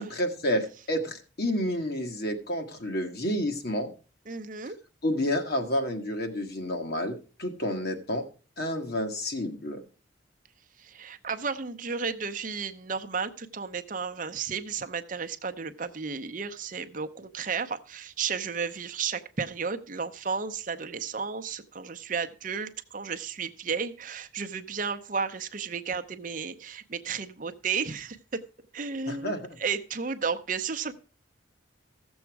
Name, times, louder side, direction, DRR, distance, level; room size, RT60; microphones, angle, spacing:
voice 1, 0.0-3.9 5.0-8.2 8.6-9.8 29.1-29.4, equal, 50° left, 4 dB, 1.6 m, -30 dB
voice 2, 4.3-4.8 10.8-28.4 28.7-30.9, right 5 dB, 40° right, 7 dB, 0.7 m, -33 dB
15.0 x 7.1 x 4.6 m, 0.36 s
head